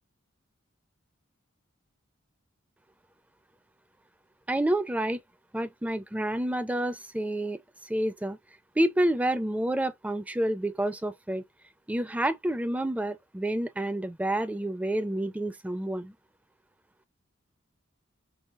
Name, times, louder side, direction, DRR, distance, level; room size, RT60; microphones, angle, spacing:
voice 1, 4.5-5.2 5.5-8.4 8.8-11.4 11.9-16.1, right 1 dB, 5° right, 0.4 m, -29 dB
5.4 x 2.3 x 2.4 m
head